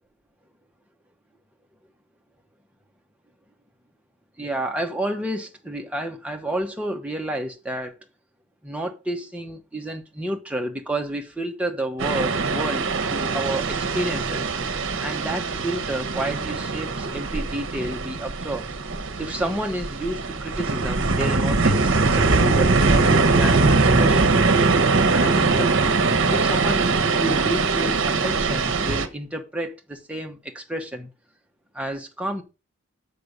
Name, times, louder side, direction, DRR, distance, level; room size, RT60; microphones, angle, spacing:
voice 1, 4.4-7.9 8.6-14.5 15.0-18.7 19.2-24.3 25.1-25.7 26.3-31.1 31.7-32.4, right 1 dB, 5° right, 1.1 m, -30 dB
sound 1, 12.0-29.1, right 3 dB, 60° right, 1.0 m, -21 dB
6.5 x 5.5 x 6.5 m
head